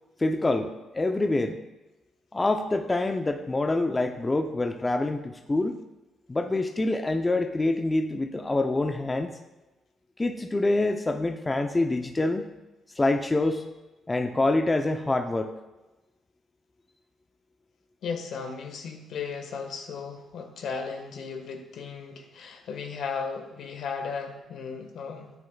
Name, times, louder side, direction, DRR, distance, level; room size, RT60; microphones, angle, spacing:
voice 1, 0.2-1.6 2.3-5.8 6.3-9.3 10.2-12.4 13.0-13.6 14.1-15.5, left 2 dB, 20° left, 6 dB, 0.6 m, -26 dB
voice 2, 18.0-25.3, left 5 dB, 70° left, 5 dB, 1.4 m, -35 dB
13.0 x 9.4 x 2.3 m, 1.1 s
cardioid pair, 90°, 0 cm